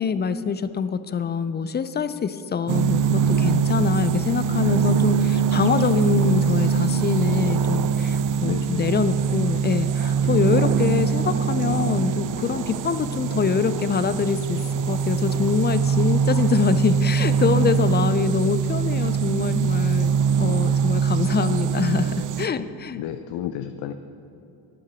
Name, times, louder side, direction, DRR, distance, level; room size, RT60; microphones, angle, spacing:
voice 1, 0.0-14.6 14.9-20.1 20.4-23.0, left 6 dB, 25° left, 13 dB, 0.3 m, -25 dB
sound 1, 2.7-22.5, right 6 dB, 45° right, 0.5 m, -22 dB
voice 2, 8.4-8.8 23.0-23.9, left 11 dB, 75° left, 9 dB, 0.5 m, -31 dB
9.7 x 5.8 x 6.1 m, 2.8 s
cardioid pair, 70°, 45 cm